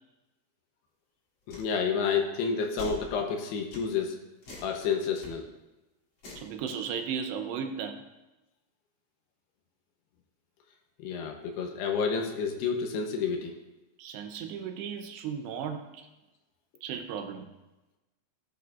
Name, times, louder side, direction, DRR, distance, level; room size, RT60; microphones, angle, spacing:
voice 1, 1.5-4.2 4.6-5.5 11.0-13.5, left 5 dB, 75° left, 3 dB, 2.7 m, -30 dB
sound 1, 1.5-1.7 2.8-3.1 3.7-3.9 4.4-4.7 5.2-5.3 6.2-6.5, left 4 dB, 35° left, 2.9 m, -42 dB
voice 2, 6.4-8.0 14.0-16.1 16.8-17.5, right 7 dB, 80° right, 6 dB, 2.7 m, -35 dB
16.0 x 8.9 x 2.4 m, 1.0 s
omnidirectional pair, 5.2 m